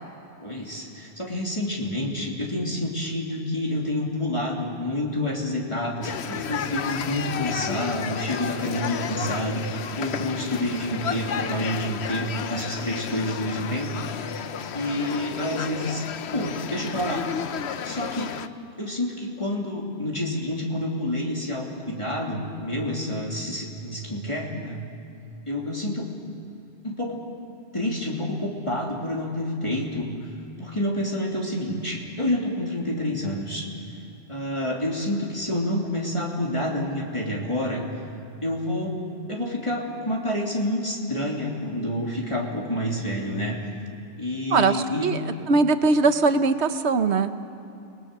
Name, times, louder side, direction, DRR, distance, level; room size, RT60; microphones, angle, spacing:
voice 1, 0.4-14.0 14.7-16.0 16.3-17.3 17.8-18.3 18.8-24.8 25.5-26.1 26.8-27.2 27.7-30.2 30.6-33.7 34.3-37.8 38.4-39.0 39.3-43.6 44.2-45.1, left 1 dB, 25° left, -2 dB, 3.1 m, -28 dB
sound 1, 6.0-18.5, left 7 dB, 75° left, 1.0 m, -32 dB
voice 2, 44.5-47.3, right 4 dB, 75° right, 9 dB, 1.3 m, -21 dB
30.0 x 20.5 x 6.8 m, 2.8 s
omnidirectional pair, 1.1 m